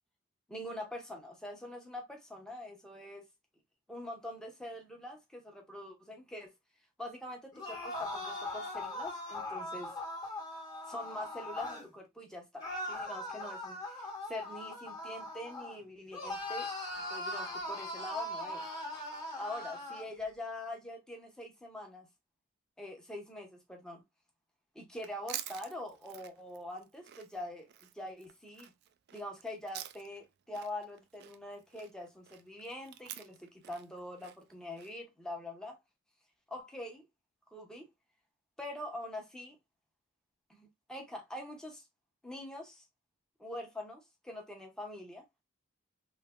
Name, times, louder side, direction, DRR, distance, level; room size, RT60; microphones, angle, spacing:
voice 1, 0.5-3.2 3.9-6.5 7.0-9.9 10.9-16.7 17.1-18.7 19.4-22.1 22.8-24.0 24.7-27.7 27.9-28.7 29.1-35.8 36.5-37.1 37.5-37.9 38.6-39.6 40.5-41.8 42.2-42.8 43.4-45.2, left 1 dB, 5° left, 0.8 m, -44 dB
sound 1, 7.5-11.9 12.6-15.8 16.1-20.1, left 1 dB, 20° left, 1.2 m, -40 dB
Chewing mastication, 24.9-30.3 30.5-34.9, right 12 dB, 50° right, 0.3 m, -48 dB
3.2 x 3.1 x 2.3 m
head